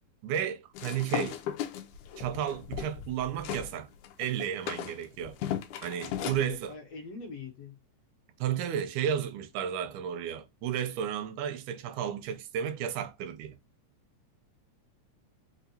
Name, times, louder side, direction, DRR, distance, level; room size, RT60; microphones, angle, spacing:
voice 1, 0.2-1.4 2.2-3.9 4.2-5.4 5.8-6.7 8.4-13.6, right 9 dB, 90° right, 2.1 m, -33 dB
sound 1, 0.7-3.7 4.0-6.5, left 9 dB, 80° left, 2.0 m, -36 dB
voice 2, 6.1-7.8, left 4 dB, 65° left, 1.9 m, -43 dB
5.4 x 2.4 x 2.8 m
omnidirectional pair, 3.4 m